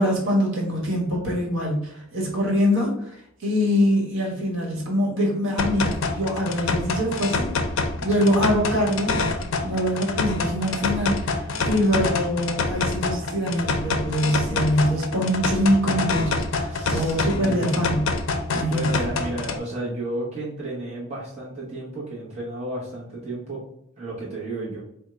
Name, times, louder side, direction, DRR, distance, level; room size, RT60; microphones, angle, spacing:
voice 1, 0.0-7.5 8.0-9.2 9.6-18.1 18.5-19.0, equal, 60° right, -2 dB, 1.3 m, -24 dB
sound 1, 5.6-19.6, left 3 dB, 65° left, 0.4 m, -26 dB
voice 2, 16.7-17.8 18.7-23.6 24.0-24.8, right 1 dB, 30° right, -7 dB, 0.9 m, -32 dB
3.6 x 2.1 x 4.3 m, 0.75 s
head